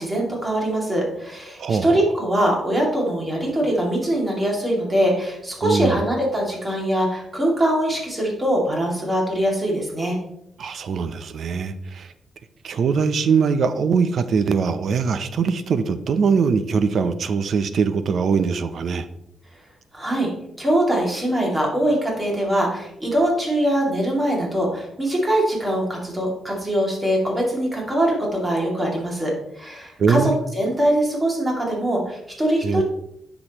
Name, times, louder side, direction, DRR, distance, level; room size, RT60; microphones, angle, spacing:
voice 1, 0.0-10.2 19.9-32.8, right 1 dB, 15° right, -2 dB, 2.4 m, -22 dB
voice 2, 1.6-2.0 5.6-6.0 10.6-12.1 12.6-19.1 30.0-30.4 32.6-32.8, right 5 dB, 55° right, 12 dB, 0.6 m, -22 dB
9.7 x 6.1 x 3.0 m, 0.80 s
cardioid pair, 135°, 0 cm